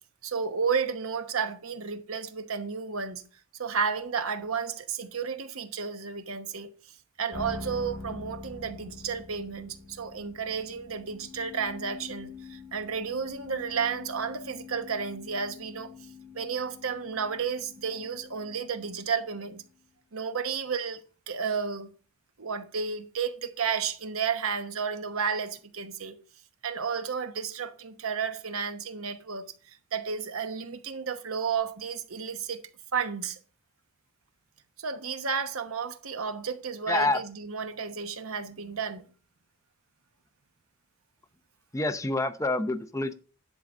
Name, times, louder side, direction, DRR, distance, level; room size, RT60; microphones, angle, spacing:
voice 1, 0.2-3.2 3.6-16.1 16.3-19.6 20.1-21.9 22.4-26.2 26.6-32.6 32.9-33.4 34.8-39.0, right 6 dB, 75° right, 1.1 m, -32 dB
sound 1, 7.3-19.6, left 4 dB, 80° left, 2.4 m, -45 dB
voice 2, 36.9-37.2 41.7-43.1, left 2 dB, 15° left, 0.6 m, -27 dB
10.5 x 3.9 x 6.1 m
head